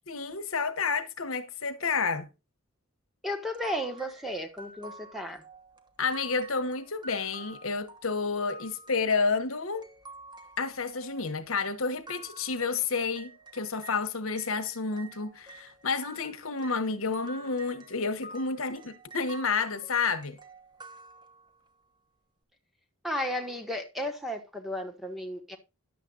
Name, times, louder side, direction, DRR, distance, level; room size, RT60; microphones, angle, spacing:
voice 1, 0.1-2.3 6.0-9.8 10.6-20.4, left 4 dB, 70° left, 1.2 m, -30 dB
voice 2, 3.2-5.4 23.0-25.6, equal, ahead, 1.2 m, -34 dB
sound 1, 3.5-14.0 14.4-21.7, right 2 dB, 20° right, 1.2 m, -49 dB
11.0 x 7.4 x 4.0 m
head